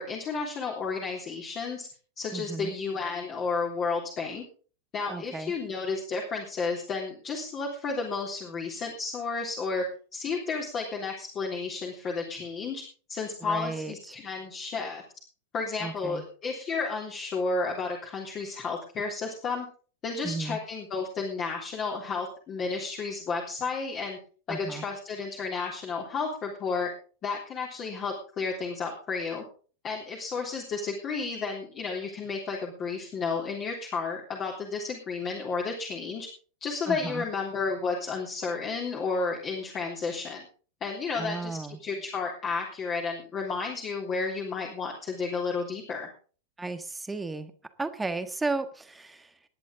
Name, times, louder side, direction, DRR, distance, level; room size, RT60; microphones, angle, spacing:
voice 1, 0.0-1.9 2.2-4.4 4.9-9.8 10.1-12.8 13.1-15.0 15.5-19.7 20.0-24.2 24.5-26.9 27.2-29.4 29.8-36.3 36.6-40.5 40.8-46.1, left 4 dB, 30° left, 0 dB, 3.3 m, -32 dB
voice 2, 2.3-2.7 5.1-5.5 13.4-14.2 15.8-16.2 20.2-20.6 24.5-24.8 36.9-37.2 41.2-41.8 46.6-47.5 47.8-49.3, right 3 dB, 10° right, 10 dB, 1.6 m, -34 dB
20.0 x 10.5 x 3.9 m, 0.40 s
figure-of-eight pair, 90°, 0 cm